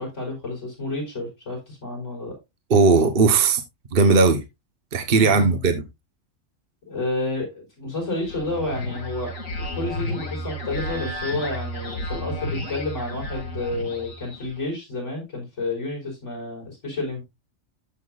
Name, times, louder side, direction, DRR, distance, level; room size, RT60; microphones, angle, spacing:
voice 1, 0.0-2.4 5.2-5.6 6.9-17.2, left 2 dB, 60° left, 5.2 m, -30 dB
voice 2, 2.7-3.6 3.9-4.4 4.9-5.8, right 4 dB, 45° right, 1.2 m, -17 dB
sound 1, 8.0-14.6, left 1 dB, 85° left, 2.7 m, -32 dB
14.0 x 5.8 x 2.4 m
omnidirectional pair, 1.4 m